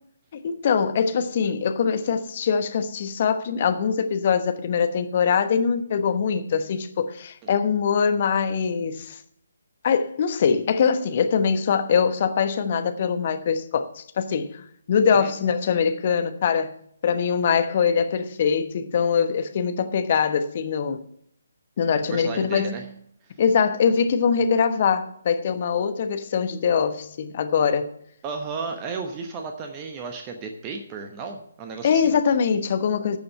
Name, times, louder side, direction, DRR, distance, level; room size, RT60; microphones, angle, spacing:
voice 1, 0.4-9.2 9.8-16.7 17.0-21.0 21.8-22.8 23.4-27.9 31.8-33.2, left 6 dB, 40° left, 1.1 m, -23 dB
voice 2, 22.1-22.8 23.2-23.3 28.2-32.1, right 4 dB, 20° right, 1.0 m, -34 dB
12.0 x 6.9 x 5.5 m
figure-of-eight pair, 140°, 0 cm